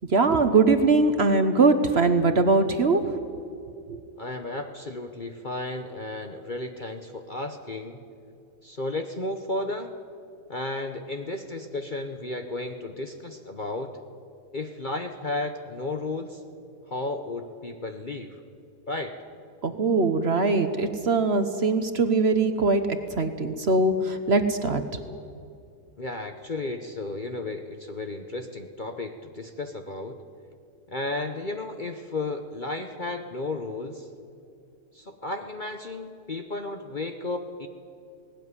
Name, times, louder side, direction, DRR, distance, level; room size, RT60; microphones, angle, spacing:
voice 1, 0.0-3.2 3.9-4.0 19.6-24.8, right 3 dB, 45° right, 9 dB, 1.1 m, -22 dB
voice 2, 4.2-8.0 8.6-9.9 10.5-14.0 14.5-16.4 16.9-18.4 18.9-19.2 26.0-30.2 30.9-34.1 34.9-37.7, left 2 dB, 35° left, 6 dB, 0.9 m, -33 dB
18.5 x 17.5 x 9.7 m, 2.6 s
omnidirectional pair, 1.7 m